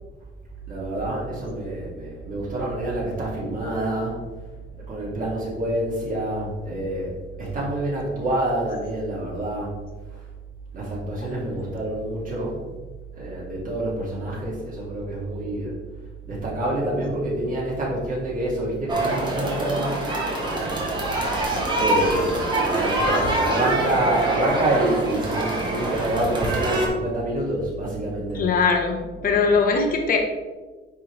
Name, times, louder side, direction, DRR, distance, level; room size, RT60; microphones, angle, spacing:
voice 1, 0.7-4.2 4.9-7.1 7.4-9.7 10.7-12.7 13.1-15.7 16.2-20.0 21.8-28.4 29.2-29.5, right 1 dB, 40° right, -5 dB, 1.9 m, -27 dB
sound 1, 18.9-26.9, right 2 dB, 20° right, 1.2 m, -25 dB
voice 2, 28.4-29.0 29.2-30.2, left 5 dB, 45° left, 2 dB, 0.9 m, -20 dB
9.4 x 3.6 x 3.1 m, 1.2 s
cardioid pair, 150°, 21 cm